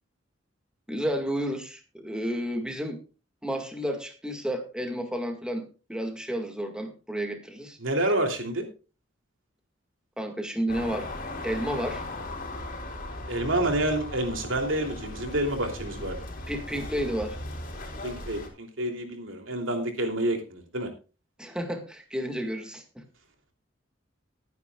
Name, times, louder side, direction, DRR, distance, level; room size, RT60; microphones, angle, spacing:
voice 1, 0.9-3.0 3.4-5.6 5.9-7.8 10.2-11.1 11.4-12.0 16.5-17.4 21.4-23.0, equal, 5° right, 4 dB, 1.8 m, -31 dB
voice 2, 7.8-8.7 13.3-16.2 18.0-20.9, right 1 dB, 85° right, 4 dB, 3.0 m, -28 dB
sound 1, 10.7-18.5, left 1 dB, 45° left, 3.8 m, -37 dB
20.0 x 9.5 x 2.3 m, 0.32 s
head